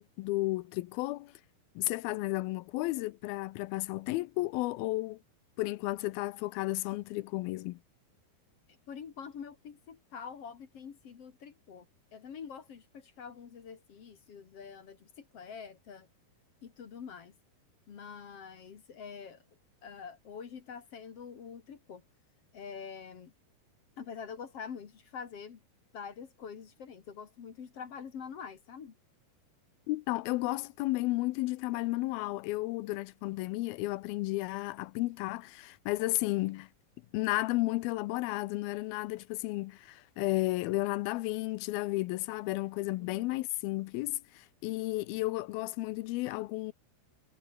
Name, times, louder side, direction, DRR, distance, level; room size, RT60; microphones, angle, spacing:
voice 1, 0.0-1.3 1.8-5.2 5.6-7.8 29.9-36.7 37.1-46.7, left 19 dB, 80° left, 2.3 m, -33 dB
voice 2, 8.7-11.9 12.1-16.1 16.6-17.3 17.9-19.4 19.8-22.0 22.5-23.3 24.0-25.6 25.9-29.0 43.0-43.2, left 6 dB, 45° left, 2.4 m, -45 dB
omnidirectional pair, 4.6 m